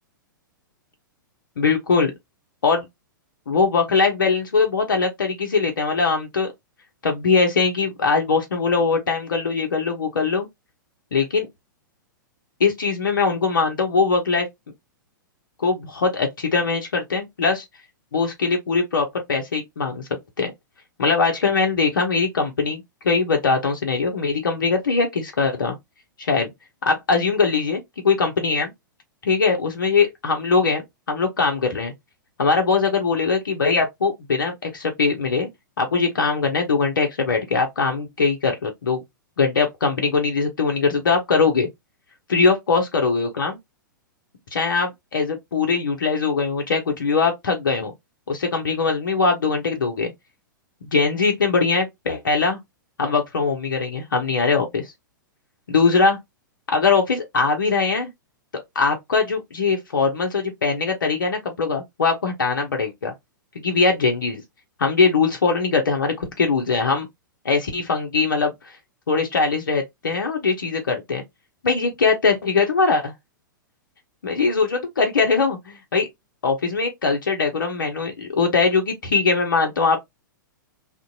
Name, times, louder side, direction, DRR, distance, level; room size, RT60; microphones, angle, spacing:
voice 1, 1.6-2.1 2.6-2.9 3.5-6.5 7.0-10.5 11.1-11.5 12.6-14.5 15.6-17.6 18.1-20.1 20.4-20.5 21.0-25.8 26.2-26.5 26.9-28.7 29.2-31.9 32.4-35.5 35.8-39.0 39.4-41.7 42.3-43.6 44.5-47.9 48.3-50.1 50.9-52.6 53.0-54.9 55.7-56.2 56.7-58.1 58.8-63.1 63.6-64.4 64.8-67.1 67.4-68.8 69.1-71.2 71.6-73.1 74.2-76.1 76.4-80.0, left 4 dB, 70° left, 0.6 m, -21 dB
2.5 x 2.1 x 2.5 m
figure-of-eight pair, 105°, 11 cm